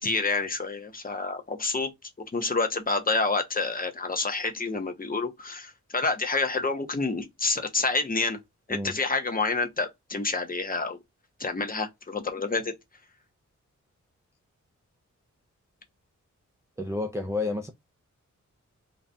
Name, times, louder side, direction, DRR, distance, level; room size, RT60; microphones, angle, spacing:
voice 1, 0.0-1.9 2.2-8.4 8.7-11.0 11.4-12.7, left 3 dB, 30° left, 0.8 m, -28 dB
voice 2, 16.8-17.7, left 2 dB, 10° right, 0.3 m, -30 dB
4.0 x 2.3 x 3.2 m
wide cardioid pair, 175°, 30 cm